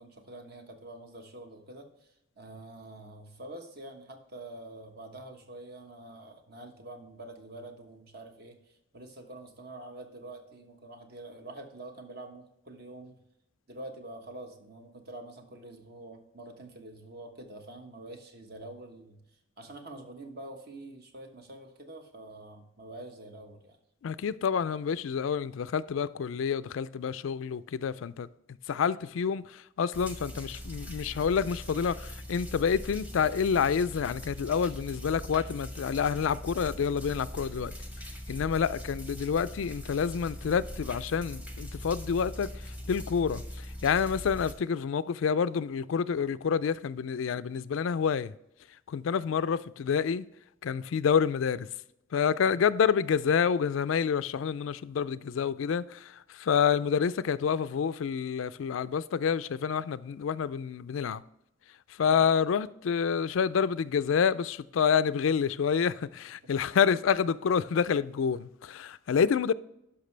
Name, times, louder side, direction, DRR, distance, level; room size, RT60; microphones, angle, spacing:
voice 1, 0.0-2.1 2.4-13.2 13.7-19.2 19.6-23.8 52.4-52.6 62.0-62.3, right 2 dB, 50° right, 1.2 m, -46 dB
voice 2, 24.0-37.7 38.3-48.3 48.9-50.2 50.6-51.7 52.1-61.2 61.9-69.5, left 7 dB, 75° left, 0.4 m, -28 dB
sound 1, 29.9-44.5, equal, 5° right, 0.9 m, -41 dB
11.5 x 5.7 x 3.3 m
head